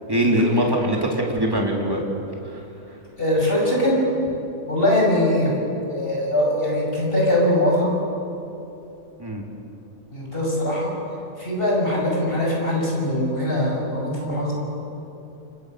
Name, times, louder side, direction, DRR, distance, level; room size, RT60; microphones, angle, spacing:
voice 1, 0.1-2.0 2.5-2.6 9.2-9.4, equal, 15° right, -1 dB, 3.5 m, -22 dB
voice 2, 3.2-4.0 4.7-5.5 5.9-7.9 10.1-10.9 11.4-14.5, left 1 dB, 35° left, -3 dB, 7.1 m, -21 dB
29.5 x 24.5 x 6.7 m, 2.9 s
omnidirectional pair, 1.7 m